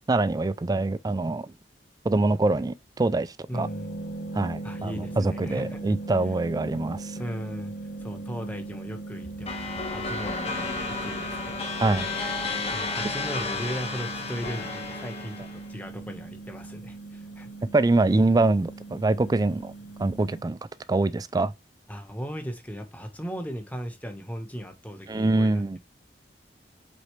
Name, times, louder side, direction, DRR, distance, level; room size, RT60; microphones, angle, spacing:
voice 1, 0.1-1.5 2.0-3.7 4.3-7.2 11.8-12.1 17.7-19.7 20.0-20.6 20.9-21.5 25.1-25.8, right 2 dB, 20° right, 0.3 m, -24 dB
sound 1, 3.5-20.4, right 3 dB, 80° left, 1.3 m, -39 dB
voice 2, 3.5-4.1 4.6-6.0 7.2-7.7 8.0-17.5 21.9-25.8, equal, 10° left, 1.3 m, -38 dB
sound 2, 9.5-15.7, left 3 dB, 35° left, 1.5 m, -32 dB
8.1 x 4.2 x 3.2 m
head